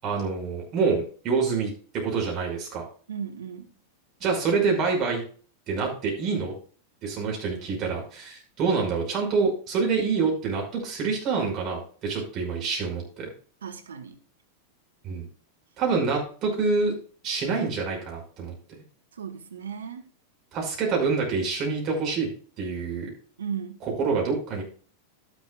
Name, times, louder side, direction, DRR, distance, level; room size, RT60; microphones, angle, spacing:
voice 1, 0.0-2.8 4.2-5.2 5.7-6.5 7.0-13.3 15.0-15.3 15.8-16.9 17.2-18.5 20.5-22.3 22.6-23.1 23.8-24.6, right 4 dB, 35° right, 5.7 m, -26 dB
voice 2, 3.1-3.7 13.6-14.2 19.2-20.0 23.4-23.8, right 7 dB, 70° right, 1.1 m, -35 dB
12.0 x 11.0 x 2.4 m
figure-of-eight pair, 90°, 0 cm